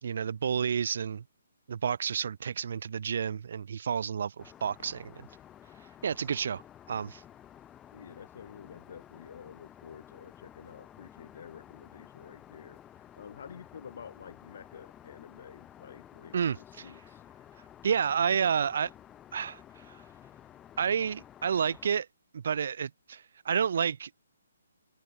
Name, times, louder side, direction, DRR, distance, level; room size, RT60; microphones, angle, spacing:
voice 1, 0.0-1.2 1.7-5.3 6.0-6.6 6.9-7.2 16.3-16.9 17.8-18.9 19.3-19.6 19.9-20.0 20.8-22.1 22.3-24.3, right 7 dB, 55° right, 1.0 m, -30 dB
Aircraft, 4.4-21.9, left 11 dB, 10° left, 3.0 m, -53 dB
voice 2, 7.9-17.2, left 7 dB, 50° left, 5.1 m, -49 dB
hypercardioid pair, 165°, 0 cm